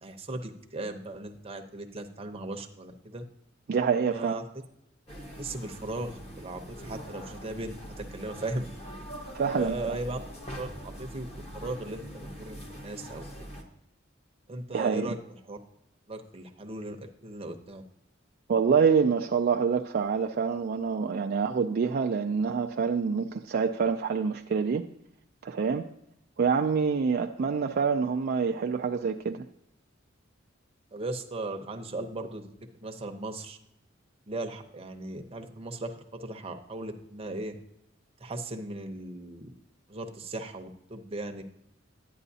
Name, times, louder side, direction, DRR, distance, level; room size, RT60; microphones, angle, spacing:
voice 1, 0.0-3.2 4.1-4.4 5.4-8.7 9.5-10.2 10.6-13.2 14.5-15.2 15.4-15.6 16.1-17.8 30.9-33.6 34.3-37.5 38.2-39.5 39.9-41.4, right 2 dB, 30° right, 4 dB, 0.8 m, -37 dB
voice 2, 3.7-4.4 9.3-9.7 14.7-15.0 18.5-24.8 25.4-25.9 26.4-29.5, right 6 dB, 50° right, 4 dB, 0.4 m, -26 dB
sound 1, 5.1-13.6, equal, 30° left, 1.2 m, -43 dB
11.0 x 9.1 x 2.7 m, 0.80 s
head